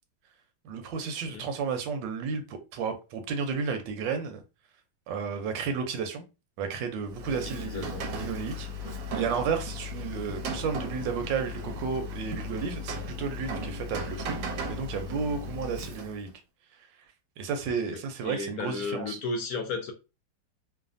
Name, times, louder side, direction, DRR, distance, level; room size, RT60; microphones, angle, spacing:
voice 1, 0.6-4.4 5.1-6.2 6.6-8.7 9.1-14.4 14.7-16.3 17.4-19.2, right 6 dB, 85° right, 1.3 m, -32 dB
Rain, 7.0-16.3, left 1 dB, 70° right, 1.0 m, -36 dB
voice 2, 7.4-8.1 8.8-9.0 17.9-18.0 18.2-19.9, left 4 dB, 70° left, 0.9 m, -34 dB
3.2 x 2.1 x 2.5 m
omnidirectional pair, 1.9 m